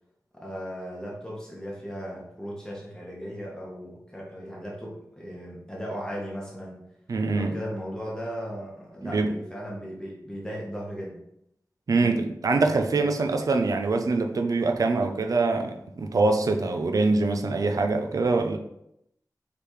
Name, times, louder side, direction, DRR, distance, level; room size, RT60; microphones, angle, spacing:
voice 1, 0.3-6.9 7.3-11.2 12.0-12.2 13.0-13.1, equal, 10° left, -4 dB, 1.2 m, -37 dB
voice 2, 7.1-7.5 9.0-9.3 11.9-18.6, right 3 dB, 60° right, 4 dB, 0.5 m, -24 dB
3.4 x 3.4 x 4.5 m, 0.80 s
wide cardioid pair, 100°, 7 cm